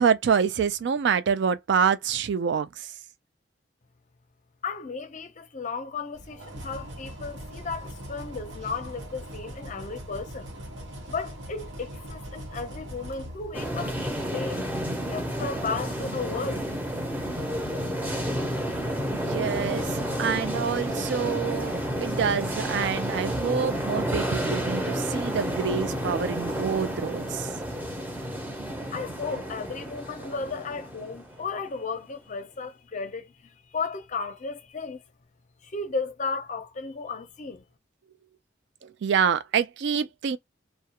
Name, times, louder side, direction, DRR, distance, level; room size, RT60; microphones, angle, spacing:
voice 1, 0.0-2.9 19.1-19.9 20.2-27.5 39.0-40.4, right 7 dB, 65° right, 0.3 m, -26 dB
voice 2, 4.6-10.5 11.1-14.6 15.0-16.6 28.9-35.0 35.6-37.7, left 4 dB, 40° left, 0.5 m, -34 dB
sound 1, 6.1-14.1, equal, 85° right, 1.0 m, -41 dB
sound 2, 13.5-31.7, equal, 10° right, 0.6 m, -30 dB
2.3 x 2.1 x 2.8 m
head